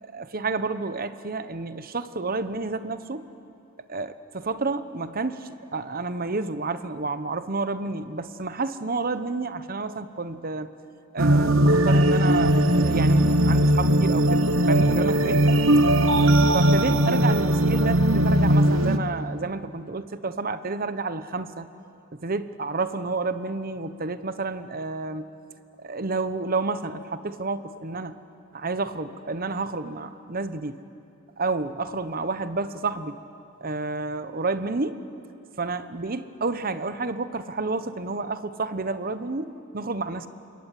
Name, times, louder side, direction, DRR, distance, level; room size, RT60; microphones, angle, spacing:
voice 1, 0.0-3.3 3.9-10.7 11.1-15.5 16.5-21.7 22.1-25.3 25.8-28.1 28.5-30.8 31.4-33.2 33.6-35.0 35.6-40.3, right 3 dB, 45° right, 11 dB, 1.1 m, -30 dB
sound 1, 11.2-19.0, right 1 dB, 85° right, 1.3 m, -19 dB
26.5 x 22.5 x 9.4 m, 2.6 s
head